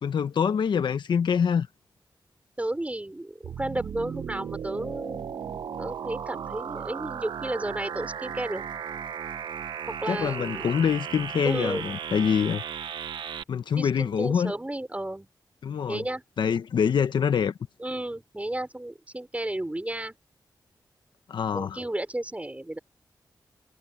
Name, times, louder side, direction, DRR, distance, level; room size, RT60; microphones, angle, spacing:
voice 1, 0.0-1.7 10.1-12.6 13.5-14.5 15.6-16.0 16.4-17.5 21.3-21.8, left 7 dB, 85° left, 1.2 m, -25 dB
voice 2, 2.6-8.6 10.0-10.7 11.4-11.8 13.7-15.3 15.9-16.2 17.8-20.2 21.5-22.8, right 1 dB, 15° right, 5.4 m, -33 dB
sound 1, 3.4-13.4, right 8 dB, 90° right, 1.1 m, -36 dB
cardioid pair, 50°, 8 cm